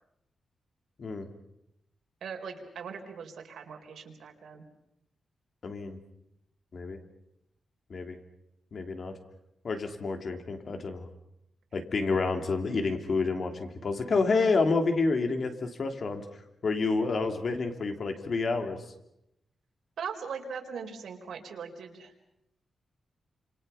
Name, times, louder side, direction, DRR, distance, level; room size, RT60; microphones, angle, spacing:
voice 1, 2.2-4.6 20.0-22.1, right 6 dB, 85° right, 3 dB, 4.4 m, -40 dB
voice 2, 5.6-6.0 6.7-7.0 7.9-8.2 8.7-9.1 9.6-11.1 11.7-16.2 16.6-18.8, left 3 dB, 45° left, 5 dB, 2.9 m, -29 dB
28.5 x 27.5 x 5.7 m, 0.82 s
wide cardioid pair, 165°, 0 cm